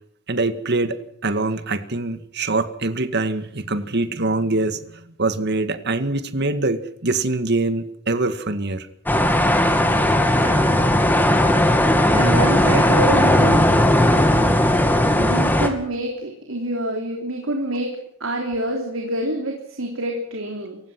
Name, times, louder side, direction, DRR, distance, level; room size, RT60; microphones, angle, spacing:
voice 1, 0.3-8.9, right 2 dB, 55° right, 10 dB, 2.0 m, -24 dB
sound 1, 9.1-15.7, left 1 dB, 10° left, 2.5 m, -17 dB
voice 2, 10.3-10.8 12.1-13.7 15.2-20.8, right 1 dB, 80° right, 1 dB, 3.6 m, -27 dB
28.0 x 16.5 x 6.1 m, 0.69 s
head